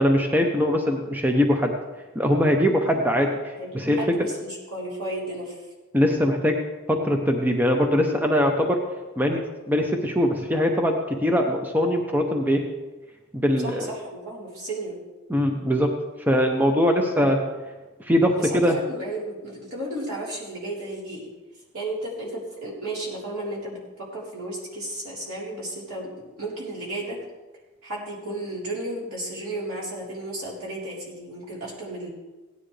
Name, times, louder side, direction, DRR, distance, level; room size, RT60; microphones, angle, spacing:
voice 1, 0.0-1.7 2.1-4.3 5.9-6.6 6.9-8.8 9.2-12.6 13.3-13.9 15.3-15.9 16.3-17.4 18.0-18.8, equal, 10° right, 3 dB, 0.7 m, -22 dB
voice 2, 3.6-5.6 13.6-15.0 17.0-17.2 18.4-21.3 21.7-26.1 26.4-27.2 27.8-32.1, right 1 dB, 80° right, -5 dB, 3.9 m, -33 dB
16.5 x 10.0 x 3.3 m, 1.2 s
head